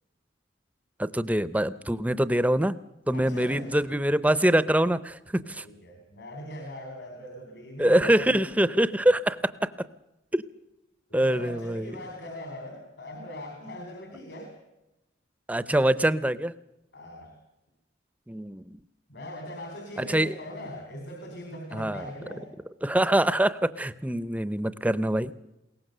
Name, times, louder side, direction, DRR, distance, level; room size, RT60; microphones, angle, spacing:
voice 1, 1.0-2.8 3.1-5.6 7.8-9.5 10.3-10.4 11.1-11.9 15.5-16.5 18.3-18.8 20.0-20.3 21.7-22.0 22.8-25.4, right 1 dB, 10° right, 16 dB, 0.6 m, -24 dB
voice 2, 3.1-3.8 5.4-8.4 11.1-14.6 16.9-17.4 19.1-22.5, left 1 dB, 70° left, 4 dB, 4.0 m, -41 dB
21.5 x 18.5 x 6.7 m, 0.94 s
head